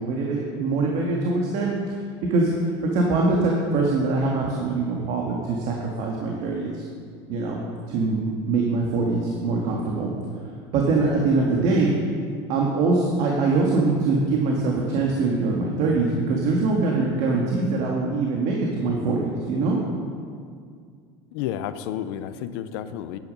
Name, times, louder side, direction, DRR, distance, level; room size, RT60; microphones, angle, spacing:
voice 1, 0.0-1.7 2.3-2.5 2.9-6.8 7.3-7.6 7.9-10.1 10.7-12.0 12.5-19.8, right 3 dB, 60° right, -1 dB, 1.8 m, -23 dB
voice 2, 21.3-23.2, left 10 dB, 80° left, 12 dB, 0.7 m, -31 dB
11.5 x 9.7 x 5.4 m, 2.1 s
cardioid pair, 145°, 13 cm